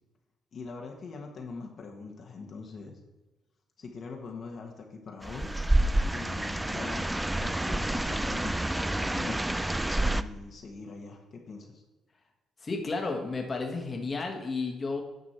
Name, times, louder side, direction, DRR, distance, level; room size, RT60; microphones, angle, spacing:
voice 1, 0.5-3.0 3.8-5.5 6.1-9.6 10.1-11.8, left 4 dB, 55° left, 1 dB, 1.3 m, -42 dB
sound 1, 5.2-10.2, right 1 dB, 10° right, 0.3 m, -28 dB
voice 2, 12.6-15.0, left 3 dB, 35° left, 2 dB, 1.4 m, -32 dB
9.4 x 5.4 x 4.3 m, 1.1 s
cardioid pair, 90°, 0 cm